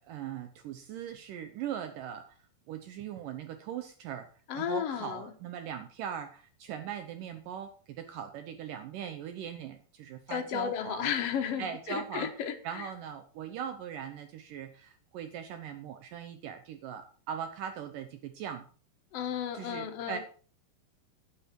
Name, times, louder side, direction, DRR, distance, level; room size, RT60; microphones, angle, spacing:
voice 1, 0.0-2.4 2.7-4.3 4.5-11.1 11.6-12.3 12.6-18.7 19.5-20.2, right 9 dB, 70° right, 8 dB, 2.2 m, -40 dB
voice 2, 4.5-5.3 10.3-12.9 19.1-20.2, left 9 dB, 65° left, 6 dB, 1.6 m, -33 dB
10.5 x 9.4 x 4.6 m, 0.40 s
omnidirectional pair, 4.5 m